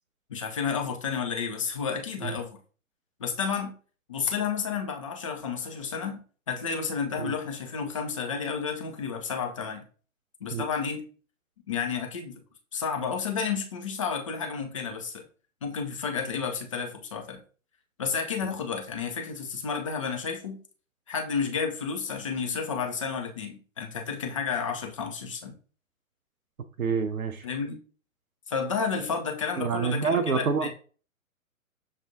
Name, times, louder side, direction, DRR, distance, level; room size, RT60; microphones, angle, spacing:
voice 1, 0.3-2.6 3.2-3.7 4.1-6.2 6.5-9.8 10.4-11.0 11.7-12.4 12.7-15.3 15.6-17.4 18.0-20.6 21.1-25.5 27.4-27.8 28.5-30.7, left 6 dB, 25° left, 0.4 m, -31 dB
voice 2, 26.8-27.5 29.6-30.7, right 5 dB, 85° right, 0.6 m, -27 dB
6.6 x 2.4 x 2.5 m
figure-of-eight pair, 120°, 41 cm